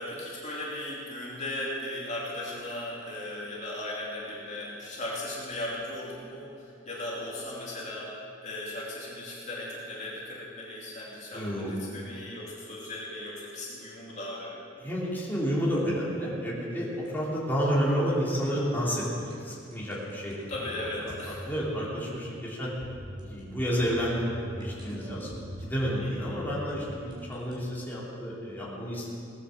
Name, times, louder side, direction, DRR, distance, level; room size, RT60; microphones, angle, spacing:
voice 1, 0.0-14.6 20.5-21.4 26.0-26.4, left 1 dB, 40° left, -5 dB, 2.8 m, -37 dB
voice 2, 11.3-11.7 14.8-20.4 20.7-20.9 21.3-29.1, equal, 10° left, -7 dB, 3.3 m, -30 dB
sound 1, 16.8-17.2 17.9-18.2 18.5-18.6 18.9-19.0 19.3-20.7 21.1-21.7 22.0-22.2 22.8-25.9 26.3-27.6, equal, 25° right, 4.7 m, -43 dB
18.0 x 9.6 x 7.3 m, 2.5 s
head